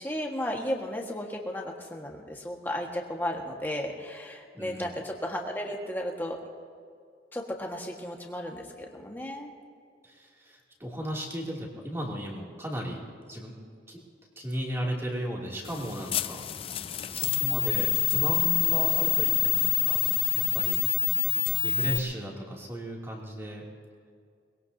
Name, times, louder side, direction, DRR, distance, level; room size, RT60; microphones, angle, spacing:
voice 1, 0.0-6.4 7.3-9.5, left 1 dB, 10° left, 0 dB, 1.6 m, -34 dB
voice 2, 4.5-4.9 10.0-13.0 13.3-13.6 13.9-14.0 14.4-16.4 16.9-20.0 20.5-20.8 21.3-23.6, equal, 15° right, -3 dB, 2.7 m, -36 dB
sound 1, 15.7-22.0, left 13 dB, 30° left, 0.3 m, -26 dB
22.5 x 21.0 x 2.8 m, 2.2 s
head